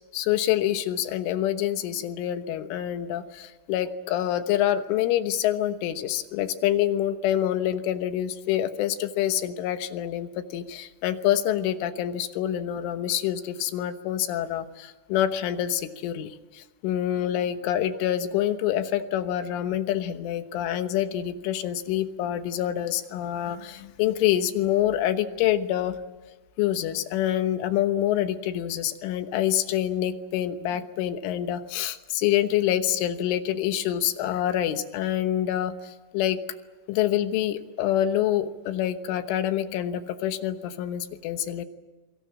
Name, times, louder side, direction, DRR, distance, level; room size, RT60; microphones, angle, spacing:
voice 1, 0.1-26.0 26.6-36.4 36.9-41.7, left 11 dB, 80° left, 9 dB, 3.6 m, -26 dB
27.0 x 24.0 x 7.5 m, 1.2 s
omnidirectional pair, 5.6 m